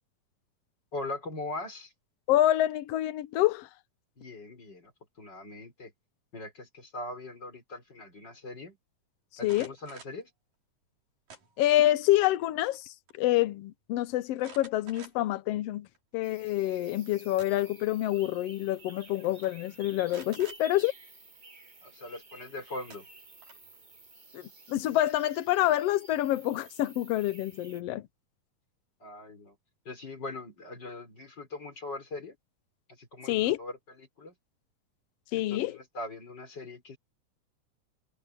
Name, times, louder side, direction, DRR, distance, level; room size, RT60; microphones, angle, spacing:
voice 1, 0.9-1.9 4.2-4.9 5.2-5.9 6.3-8.8 9.4-10.3 21.8-23.1 29.0-29.6 29.8-32.4 32.9-33.8 34.2-34.3 35.3-37.0, left 2 dB, 30° left, 5.0 m, -41 dB
voice 2, 2.3-3.7 9.4-9.7 11.6-15.9 16.1-20.9 24.3-28.1 33.2-33.6 35.3-35.8, left 14 dB, 80° left, 1.4 m, -27 dB
sound 1, 9.4-10.2 11.3-11.9 12.3-12.8 13.1-13.2 14.4-15.4 15.9-16.0 17.1-17.8 18.8-18.9 19.2-19.5 20.1-20.6 22.4-22.5 22.9-23.7, right 4 dB, 90° right, 7.8 m, -50 dB
sound 2, 16.2-27.8, right 3 dB, 25° right, 0.9 m, -53 dB
omnidirectional pair, 3.7 m